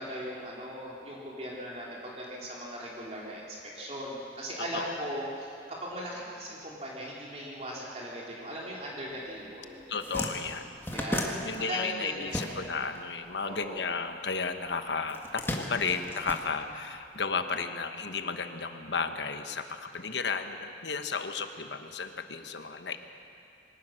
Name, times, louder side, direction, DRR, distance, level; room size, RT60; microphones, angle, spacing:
voice 1, 0.0-9.8 10.9-11.3 11.6-12.5 13.4-13.9, equal, 35° right, -4 dB, 3.3 m, -38 dB
voice 2, 4.7-5.0 9.9-10.7 11.4-23.0, left 5 dB, 80° left, 7 dB, 1.2 m, -33 dB
sound 1, 9.4-9.5 9.8-13.0 13.2-14.4 15.1-17.1, left 1 dB, 15° left, 1.6 m, -35 dB
23.0 x 17.5 x 6.4 m, 2.5 s
head